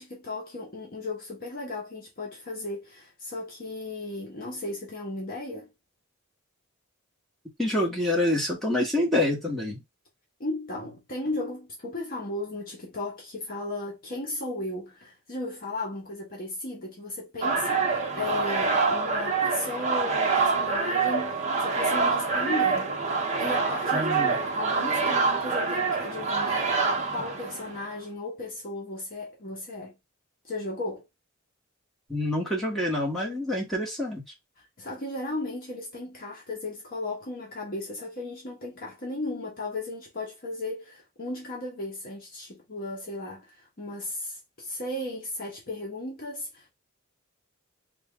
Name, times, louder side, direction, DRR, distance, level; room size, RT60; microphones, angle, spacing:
voice 1, 0.0-5.7 10.4-22.9 23.4-26.7 27.1-29.9 30.4-31.0 34.8-46.7, left 2 dB, 45° left, 0.9 m, -35 dB
voice 2, 7.6-9.8 23.9-24.3 32.1-34.2, left 1 dB, ahead, 1.2 m, -27 dB
sound 1, 17.4-27.9, right 4 dB, 35° right, 0.8 m, -26 dB
3.6 x 2.3 x 3.6 m
head